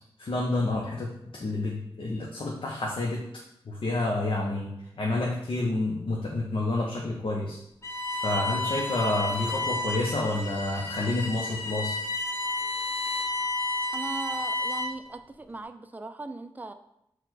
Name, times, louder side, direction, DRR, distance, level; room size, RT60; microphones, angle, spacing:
voice 1, 0.2-3.2 3.6-7.6 8.1-12.0, left 2 dB, 60° left, -2 dB, 0.6 m, -29 dB
Bowed string instrument, 7.8-15.1, left 2 dB, 30° left, 1.0 m, -31 dB
voice 2, 13.9-16.7, right 2 dB, 15° right, 9 dB, 0.3 m, -38 dB
4.4 x 2.2 x 4.0 m, 0.79 s
cardioid pair, 45°, 10 cm